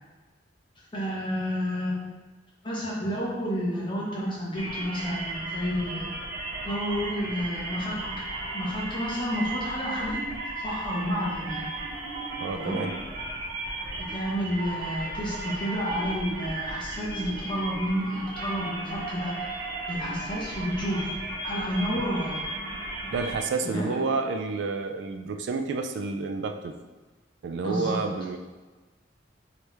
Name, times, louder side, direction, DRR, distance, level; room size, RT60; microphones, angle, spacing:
voice 1, 0.9-2.1 2.6-6.2 6.6-8.1 8.5-10.2 10.6-11.7 12.6-12.9 14.1-19.5 19.9-22.4 23.6-23.9 27.6-28.0, equal, 25° left, -5 dB, 1.1 m, -30 dB
sound 1, 4.5-23.4, right 2 dB, 50° right, 1.4 m, -35 dB
voice 2, 12.4-12.9 23.1-26.7 27.4-28.4, right 4 dB, 65° right, 6 dB, 0.3 m, -30 dB
4.6 x 3.3 x 3.3 m, 1.3 s
head